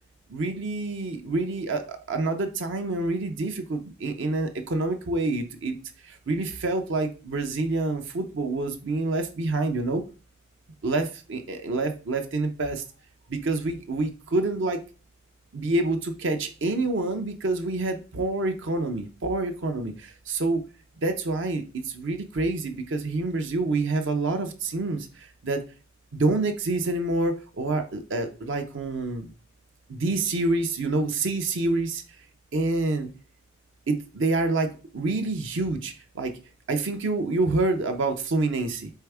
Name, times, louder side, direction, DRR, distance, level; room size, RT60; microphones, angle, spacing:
voice 1, 0.3-5.8 6.0-10.0 10.8-12.8 13.3-14.8 15.5-20.6 21.0-25.6 26.1-29.3 29.9-32.0 32.5-33.1 33.9-36.3 36.7-38.9, right 2 dB, 55° right, 6 dB, 0.6 m, -27 dB
4.6 x 3.4 x 3.4 m, 0.35 s
head